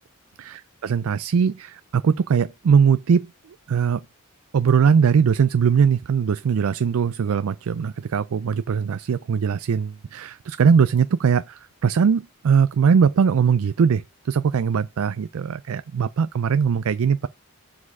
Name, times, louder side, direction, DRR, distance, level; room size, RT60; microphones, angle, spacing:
voice 1, 0.4-3.3 3.7-4.0 4.5-17.3, right 6 dB, 80° right, 0.4 m, -20 dB
7.3 x 4.1 x 5.3 m
head